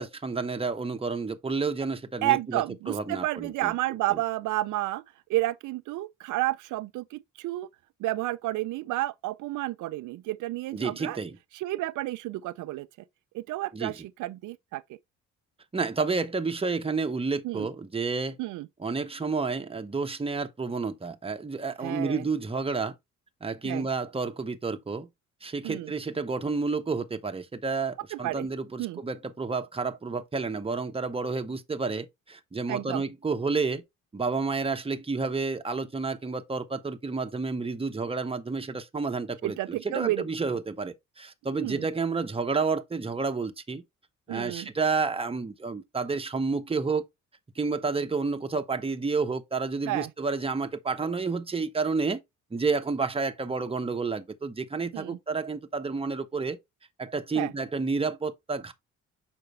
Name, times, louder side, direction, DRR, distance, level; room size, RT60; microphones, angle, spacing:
voice 1, 0.0-3.7 4.1-4.2 10.7-11.4 13.7-13.9 15.7-18.4 18.8-22.9 23.4-25.1 25.4-33.8 34.1-43.8 44.3-47.0 47.5-52.2 52.5-56.6 57.0-58.7, right 4 dB, 20° right, 1.0 m, -30 dB
voice 2, 2.2-5.0 5.3-7.7 8.0-11.2 11.5-12.9 13.3-14.8 17.4-17.7 18.4-18.7 21.8-22.2 23.6-23.9 25.6-25.9 28.1-28.5 28.8-29.0 32.7-33.0 39.4-40.2 41.5-41.9 44.3-44.7 49.9-50.1 54.9-55.2 57.3-57.5, right 16 dB, 80° right, 0.5 m, -31 dB
6.6 x 5.2 x 3.2 m
cardioid pair, 90°, 30 cm